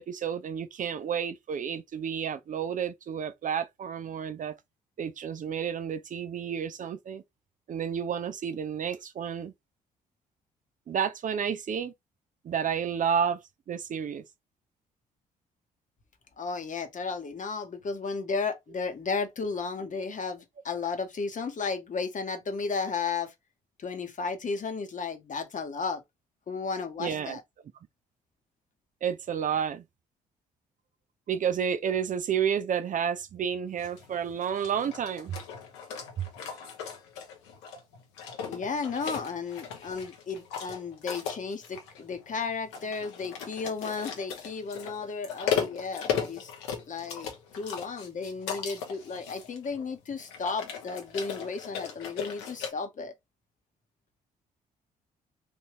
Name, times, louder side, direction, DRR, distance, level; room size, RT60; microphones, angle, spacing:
voice 1, 0.0-4.5 5.0-7.2 7.7-9.5 10.9-11.9 12.4-14.2 27.0-27.4 29.0-29.8 31.3-35.4 36.2-36.3, right 8 dB, 45° right, 0.5 m, -31 dB
voice 2, 16.4-23.3 23.8-26.0 26.5-27.4 38.5-46.5 46.9-47.3 47.6-53.1, left 4 dB, 40° left, 1.1 m, -34 dB
sound 1, 33.8-52.7, left 7 dB, 80° left, 1.0 m, -37 dB
3.3 x 2.7 x 3.0 m
hypercardioid pair, 50°, 19 cm